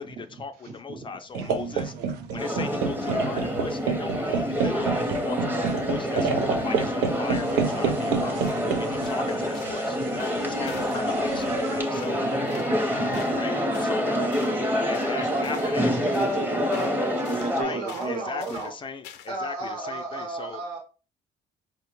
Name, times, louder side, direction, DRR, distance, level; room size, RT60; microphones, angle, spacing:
voice 1, 0.0-1.9 2.3-12.2 13.3-14.2 14.8-15.9 17.5-20.6, left 5 dB, 30° left, 0.4 m, -37 dB
voice 2, 0.7-1.1 2.0-2.2 6.2-6.9 8.2-8.8 9.0-9.5 10.1-10.2 10.7-10.8 11.4-11.5 12.1-13.5 14.1-14.4 15.1-18.2, right 4 dB, 45° right, 0.8 m, -35 dB
sound 1, 1.3-11.8, right 6 dB, 90° right, 0.5 m, -30 dB
sound 2, 2.4-17.6, left 1 dB, 10° right, 0.7 m, -27 dB
sound 3, 8.4-8.7 9.0-9.2 9.5-9.8 10.2-11.0 11.4-11.6 11.9-12.2 12.5-12.7 13.1-13.4 13.7-14.0 14.3-14.6 14.9-15.2 15.4-15.8 16.1-16.4 16.7-17.0 17.2-17.5 17.9-18.2 18.4-18.7 19.0-19.4, left 9 dB, 80° left, 0.5 m, -45 dB
voice 3, 17.4-18.7 19.3-20.8, right 3 dB, 70° right, 1.0 m, -33 dB
4.4 x 2.1 x 2.9 m
cardioid pair, 110°, 17 cm